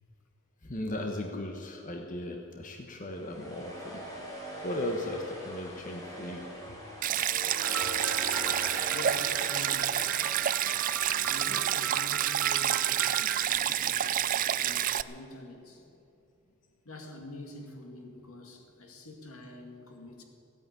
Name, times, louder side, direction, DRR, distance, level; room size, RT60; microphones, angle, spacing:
voice 1, 0.6-6.4 6.7-6.8, left 1 dB, 35° left, 2 dB, 1.1 m, -37 dB
sound 1, 3.1-15.0, equal, 15° left, 3.6 m, -43 dB
Stream, 7.0-15.0, right 11 dB, 40° right, 0.3 m, -29 dB
sound 2, 7.6-13.5, right 8 dB, 75° right, 0.6 m, -39 dB
voice 2, 8.9-10.0 11.1-13.2 13.5-14.2 14.6-15.8 16.8-20.2, left 2 dB, 80° left, 1 dB, 2.5 m, -46 dB
16.0 x 9.2 x 9.7 m, 2.7 s
head